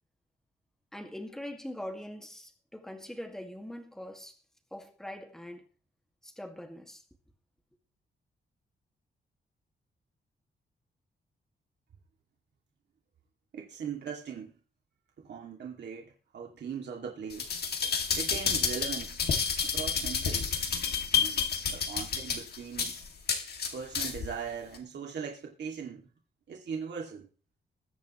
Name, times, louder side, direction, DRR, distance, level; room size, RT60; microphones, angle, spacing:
voice 1, 0.9-4.4 4.7-5.7 6.2-7.0, left 1 dB, 5° left, 2.0 m, -42 dB
voice 2, 13.5-14.6 15.2-17.5 18.1-19.2 19.6-20.5 21.2-23.0 23.7-26.1 26.5-27.3, right 6 dB, 65° right, 2.4 m, -40 dB
sound 1, 17.3-24.3 24.7-24.8, left 6 dB, 55° left, 2.3 m, -30 dB
21.0 x 10.0 x 3.1 m
wide cardioid pair, 165°, 19 cm